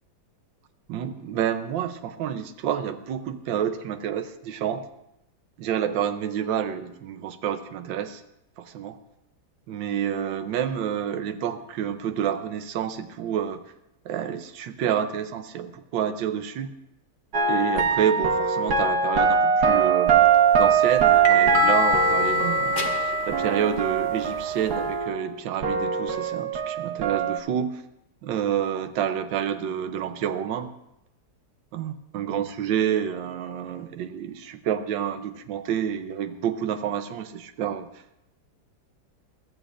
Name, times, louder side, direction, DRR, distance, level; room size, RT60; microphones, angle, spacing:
voice 1, 0.9-4.8 5.6-8.2 8.6-9.0 9.7-13.6 14.0-16.7 17.5-20.2 20.6-27.8 28.2-30.7 31.7-37.9, right 9 dB, 85° right, 8 dB, 1.4 m, -28 dB
sound 1, 17.3-25.4 25.6-27.4, right 6 dB, 60° right, 1.5 m, -22 dB
sound 2, 20.1-25.0, left 1 dB, 35° left, 0.8 m, -26 dB
22.0 x 13.5 x 2.5 m, 0.85 s
omnidirectional pair, 2.1 m